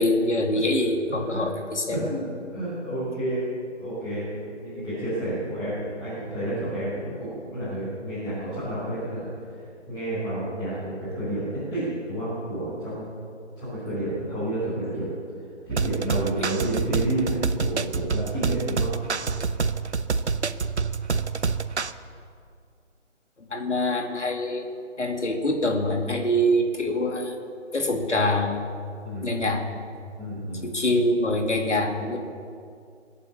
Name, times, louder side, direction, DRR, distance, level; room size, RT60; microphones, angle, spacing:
voice 1, 0.0-2.2 16.4-16.5 23.4-24.6 25.0-27.3 27.7-28.6 29.2-29.6 30.6-32.2, left 1 dB, 70° left, 2 dB, 2.6 m, -24 dB
voice 2, 1.9-3.4 3.8-9.6 9.9-13.0 13.6-15.1 15.6-18.9 29.0-29.3 30.2-30.7, right 1 dB, 10° left, -13 dB, 5.2 m, -30 dB
sound 1, 15.7-21.9, right 5 dB, 65° right, 0.8 m, -27 dB
22.5 x 8.7 x 7.1 m, 2.3 s
figure-of-eight pair, 150°, 36 cm